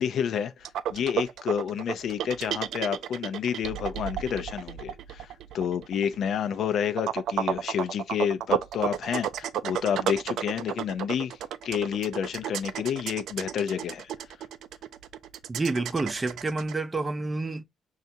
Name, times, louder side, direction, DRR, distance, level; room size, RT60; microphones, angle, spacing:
voice 1, 0.0-11.4 11.6-14.1, left 8 dB, 70° left, 0.5 m, -29 dB
sound 1, 0.6-16.7, right 9 dB, 80° right, 0.3 m, -32 dB
voice 2, 15.5-17.6, right 3 dB, 25° right, 0.5 m, -29 dB
5.5 x 2.4 x 2.6 m
cardioid pair, 90°, 0 cm